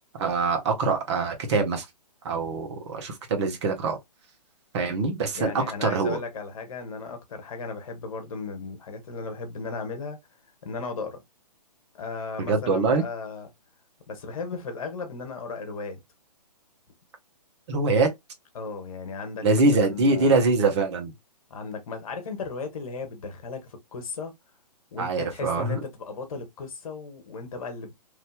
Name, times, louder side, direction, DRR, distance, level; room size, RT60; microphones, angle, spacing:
voice 1, 0.1-1.8 2.2-4.0 4.7-6.2 12.5-13.0 17.7-18.1 19.4-21.1 25.0-25.8, right 3 dB, 40° right, 1.1 m, -24 dB
voice 2, 5.3-10.2 10.6-11.2 11.9-13.5 14.1-16.0 18.5-20.4 21.5-24.3 24.9-27.9, left 4 dB, 55° left, 1.2 m, -36 dB
3.2 x 2.7 x 2.2 m
hypercardioid pair, 140°, 21 cm